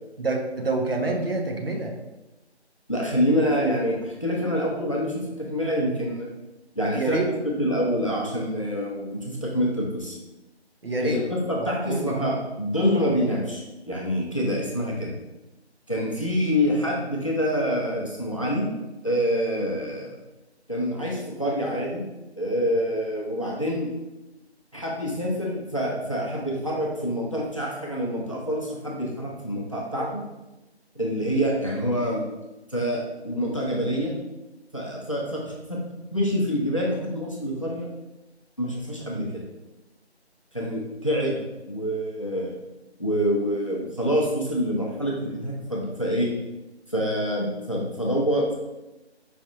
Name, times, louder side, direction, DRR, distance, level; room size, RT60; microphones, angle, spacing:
voice 1, 0.2-2.0 6.9-7.3 10.8-11.2 11.6-12.1, right 2 dB, 60° right, 1 dB, 0.8 m, -27 dB
voice 2, 2.9-6.3 6.7-10.2 11.0-13.6 13.9-15.1 15.9-18.7 19.0-20.2 20.7-22.1 22.4-23.9 24.7-30.2 30.9-32.2 32.7-34.1 34.7-35.4 35.7-35.8 36.1-37.9 38.6-39.4 40.5-41.4 41.7-42.6 43.0-46.3 46.9-48.5, equal, 30° left, -3 dB, 0.7 m, -26 dB
5.0 x 3.3 x 2.7 m, 1.0 s
figure-of-eight pair, 170°, 33 cm